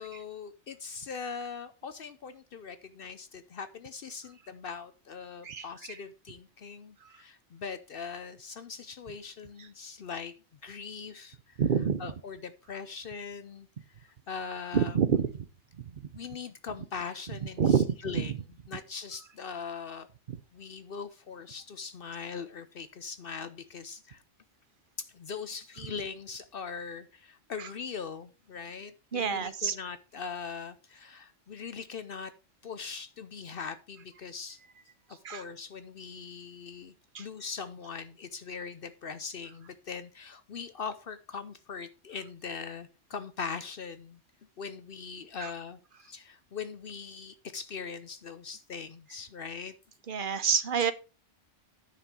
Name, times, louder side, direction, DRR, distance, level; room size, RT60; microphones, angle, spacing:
voice 1, 0.0-10.3 10.6-11.6 12.0-13.7 14.3-15.0 16.1-18.4 18.7-20.1 20.5-24.2 25.0-32.3 32.6-34.6 35.3-36.9 37.2-44.2 44.6-49.7, left 5 dB, 55° left, 12 dB, 0.8 m, -41 dB
voice 2, 11.6-12.0 14.7-15.3 17.6-17.9 18.1-18.2 29.1-29.7 35.2-35.4 37.1-37.2 45.4-45.5 50.1-50.9, right 7 dB, 50° right, 13 dB, 0.8 m, -26 dB
10.0 x 6.0 x 4.8 m, 0.33 s
omnidirectional pair, 1.2 m